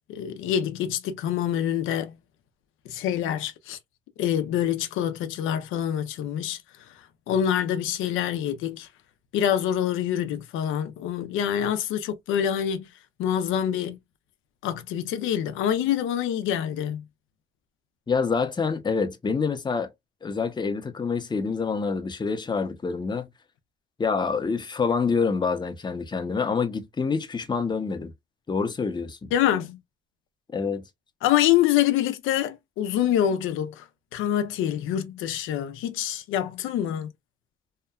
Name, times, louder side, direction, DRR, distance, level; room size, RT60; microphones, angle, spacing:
voice 1, 0.1-2.1 2.9-3.8 4.2-6.6 7.3-8.9 9.3-12.9 13.2-14.0 14.6-17.0 29.3-29.8 31.2-33.9 34.1-37.1, left 10 dB, 85° left, 0.4 m, -26 dB
voice 2, 18.1-19.9 20.2-23.3 24.0-28.1 28.5-29.3 30.5-30.8, left 5 dB, 20° left, 0.6 m, -26 dB
2.8 x 2.1 x 2.3 m
cardioid pair, 90°, 20 cm